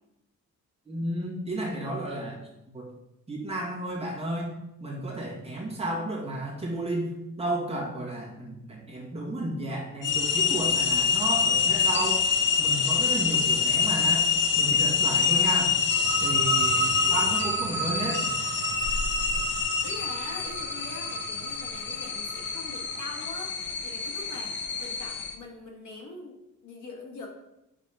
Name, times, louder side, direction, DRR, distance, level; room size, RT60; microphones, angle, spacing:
voice 1, 0.8-2.4 2.7-2.9 3.3-4.5 4.8-12.2 12.6-14.3 14.5-15.7 16.2-18.3, right 1 dB, 20° right, -4 dB, 1.8 m, -32 dB
sound 1, 10.0-25.3, left 6 dB, 35° left, 0.6 m, -26 dB
voice 2, 15.2-15.6 16.7-17.3 19.8-27.3, left 3 dB, 60° left, 0 dB, 1.4 m, -43 dB
sound 2, 15.9-23.4, right 11 dB, 75° right, 0.6 m, -35 dB
5.2 x 4.4 x 5.7 m, 0.89 s
wide cardioid pair, 155°, 33 cm